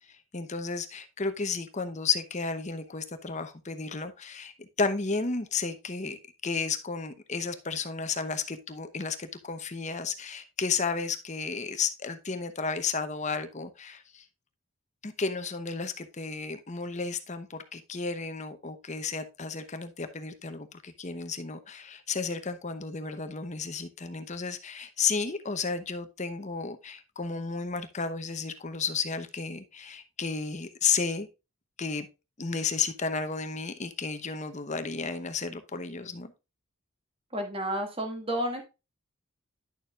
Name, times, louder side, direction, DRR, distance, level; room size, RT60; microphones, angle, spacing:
voice 1, 0.0-6.2 6.4-14.2 15.0-31.3 31.8-32.1 32.4-36.3, left 5 dB, 35° left, 9 dB, 0.9 m, -33 dB
voice 2, 37.3-38.6, equal, 25° right, 4 dB, 1.9 m, -31 dB
10.5 x 7.0 x 2.4 m, 0.27 s
head